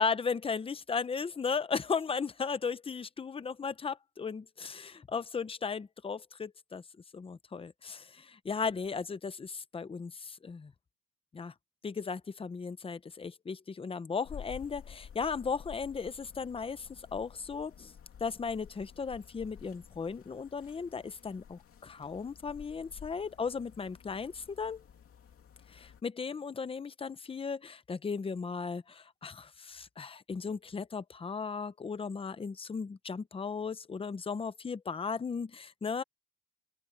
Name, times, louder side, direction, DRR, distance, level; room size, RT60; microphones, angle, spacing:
voice 1, 0.0-6.8 7.1-10.7 11.3-11.5 11.8-17.9 18.2-24.8 25.7-36.0, left 5 dB, 15° left, 0.7 m, -36 dB
sound 1, 14.2-26.0, left 8 dB, 35° left, 2.8 m, -52 dB
open air
cardioid pair, 150°, 39 cm